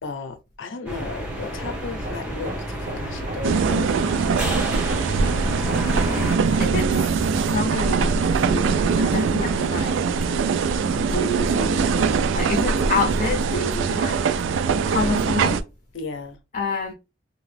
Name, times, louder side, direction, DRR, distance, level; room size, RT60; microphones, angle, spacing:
voice 1, 0.0-4.1 15.9-16.4, left 4 dB, 85° left, 0.6 m, -34 dB
sound 1, 0.9-6.4, right 1 dB, 5° right, 0.9 m, -30 dB
Hammer, 1.5-13.6, right 2 dB, 40° right, 0.7 m, -38 dB
sound 2, 3.4-15.6, right 5 dB, 85° right, 0.3 m, -22 dB
voice 2, 5.2-7.0 7.5-10.0 11.0-14.2 14.9-15.6 16.5-16.9, left 3 dB, 40° left, 0.6 m, -29 dB
2.8 x 2.3 x 3.2 m
head